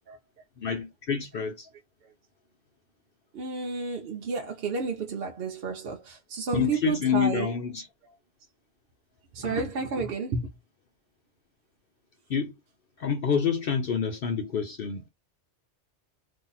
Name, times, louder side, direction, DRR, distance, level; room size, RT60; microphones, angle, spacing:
voice 1, 0.6-1.7 6.5-7.9 9.4-9.7 12.3-12.5 13.0-15.1, left 7 dB, 60° left, 0.7 m, -28 dB
voice 2, 3.3-7.5 9.3-10.5, right 4 dB, 60° right, 0.8 m, -31 dB
2.8 x 2.7 x 3.8 m
omnidirectional pair, 1.2 m